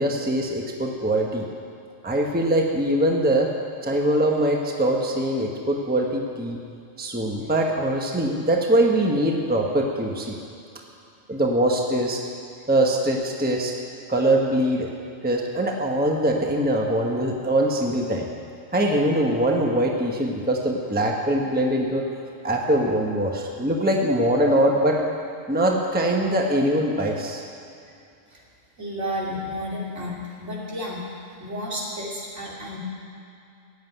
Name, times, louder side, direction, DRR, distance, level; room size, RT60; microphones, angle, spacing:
voice 1, 0.0-1.5 2.0-3.5 3.8-6.6 7.0-10.4 11.3-12.2 12.7-13.7 14.1-14.9 15.2-18.3 18.7-22.0 22.4-25.0 25.5-27.4, right 1 dB, 10° right, 0 dB, 1.1 m, -22 dB
voice 2, 28.8-31.1 31.4-32.8, equal, 70° right, -4 dB, 3.2 m, -32 dB
15.5 x 8.1 x 9.2 m, 2.6 s
omnidirectional pair, 1.3 m